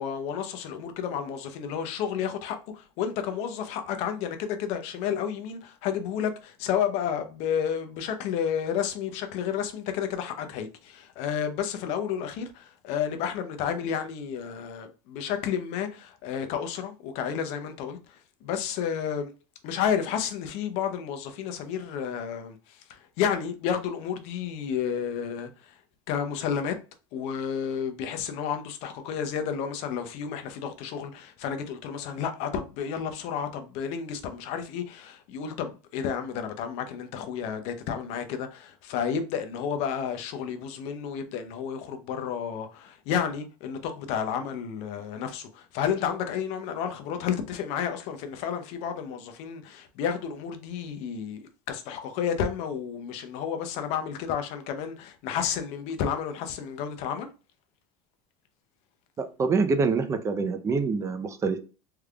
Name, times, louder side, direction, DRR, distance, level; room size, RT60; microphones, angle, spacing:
voice 1, 0.0-19.3 19.6-25.8 26.1-26.8 27.1-57.3, left 8 dB, 60° left, 0.7 m, -31 dB
voice 2, 59.2-61.6, right 4 dB, 25° right, 0.6 m, -26 dB
3.4 x 3.3 x 2.3 m
supercardioid pair, 125°, 12 cm